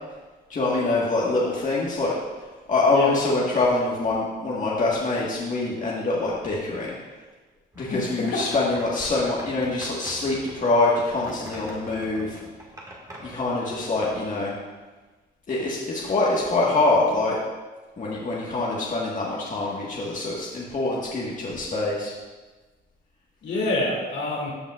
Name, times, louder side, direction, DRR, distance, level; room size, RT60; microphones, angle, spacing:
voice 1, 0.5-2.1 2.7-6.9 7.8-12.4 13.2-14.5 15.5-17.4 18.0-22.1, left 2 dB, 40° left, -5 dB, 1.5 m, -24 dB
sound 1, 7.7-14.1, right 1 dB, 15° right, 1.9 m, -43 dB
voice 2, 7.9-8.5 23.4-24.5, left 2 dB, 65° left, -2 dB, 2.3 m, -27 dB
14.5 x 5.4 x 2.4 m, 1.3 s
cardioid pair, 90°, 20 cm